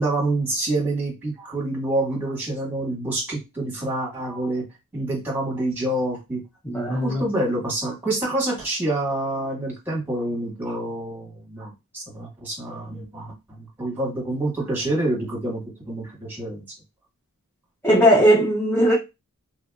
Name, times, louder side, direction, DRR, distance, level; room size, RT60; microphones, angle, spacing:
voice 1, 0.0-4.6 4.9-6.4 6.9-15.6 15.9-16.6, right 1 dB, 10° right, 1.5 m, -27 dB
voice 2, 6.6-7.2 17.8-18.9, equal, 10° left, 0.7 m, -18 dB
2.9 x 2.6 x 2.3 m
head